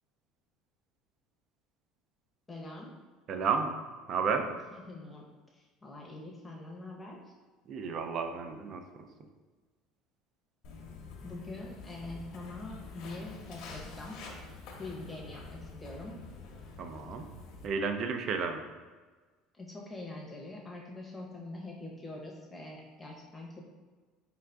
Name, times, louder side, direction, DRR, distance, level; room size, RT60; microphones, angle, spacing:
voice 1, 2.5-2.9 4.8-5.3 5.5-7.2 11.2-14.2 14.8-16.2 19.5-23.6, left 2 dB, 15° left, -2 dB, 0.7 m, -44 dB
voice 2, 3.3-3.8 4.1-4.5 7.7-8.8 16.8-17.2 17.6-18.6, right 5 dB, 45° right, 6 dB, 0.4 m, -32 dB
Walk footsteps, 10.6-17.7, left 4 dB, 65° left, 0.8 m, -47 dB
4.5 x 3.7 x 2.2 m, 1.4 s
cardioid pair, 135°, 0 cm